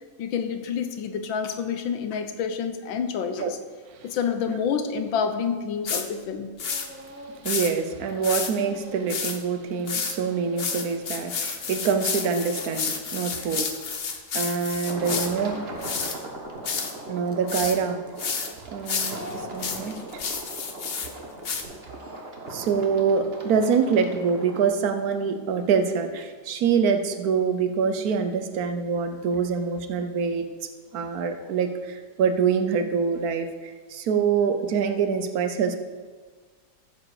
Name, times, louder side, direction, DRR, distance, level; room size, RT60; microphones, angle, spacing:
voice 1, 0.2-3.6 4.0-6.5, left 7 dB, 75° left, 8 dB, 1.6 m, -28 dB
sound 1, 5.9-6.0 6.6-6.9 7.4-7.7 8.2-8.5 9.1-9.4 9.9-10.1 10.6-15.3 15.8-16.2 16.6-16.9 17.5-17.8 18.2-18.5 18.9-21.1 21.4-21.6, left 5 dB, 45° left, 0.8 m, -30 dB
Speech / Crying sobbing, 6.6-7.7 8.0-14.6 14.9-16.3 16.6-22.8, right 1 dB, 10° right, 0.7 m, -45 dB
voice 2, 7.4-13.8 14.3-15.6 17.1-18.0 18.7-20.0 22.5-30.5 30.9-35.8, right 6 dB, 60° right, 8 dB, 1.1 m, -25 dB
sound 2, 14.8-24.7, right 2 dB, 35° right, 1.5 m, -39 dB
14.0 x 7.3 x 4.9 m, 1.5 s
omnidirectional pair, 2.1 m